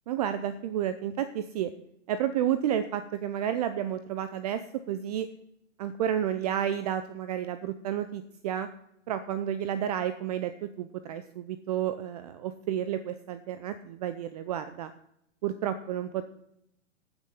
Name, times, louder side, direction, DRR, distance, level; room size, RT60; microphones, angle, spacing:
voice 1, 0.1-1.7 2.1-5.3 5.8-8.7 9.1-14.9 15.4-16.2, right 10 dB, 30° right, 12 dB, 0.6 m, -31 dB
14.5 x 6.4 x 7.2 m, 0.76 s
figure-of-eight pair, 110°, 37 cm